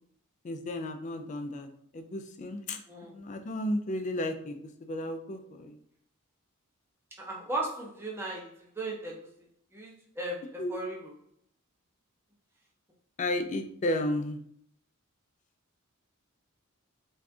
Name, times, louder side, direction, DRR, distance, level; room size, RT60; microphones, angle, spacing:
voice 1, 0.4-1.7 1.9-5.7 10.6-10.8 13.2-14.4, left 1 dB, 35° left, 7 dB, 0.3 m, -33 dB
voice 2, 2.9-3.2 7.2-9.3 9.7-11.1, right 2 dB, 10° right, -3 dB, 0.6 m, -37 dB
2.6 x 2.4 x 3.4 m, 0.65 s
head